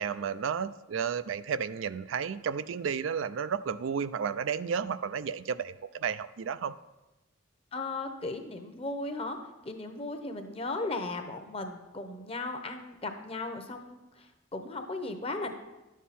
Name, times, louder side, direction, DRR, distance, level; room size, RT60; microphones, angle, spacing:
voice 1, 0.0-6.7, right 7 dB, 80° right, 14 dB, 0.4 m, -32 dB
voice 2, 7.7-9.4 9.6-15.5, left 2 dB, 30° left, 6 dB, 0.9 m, -36 dB
11.0 x 7.4 x 4.2 m, 1.0 s
head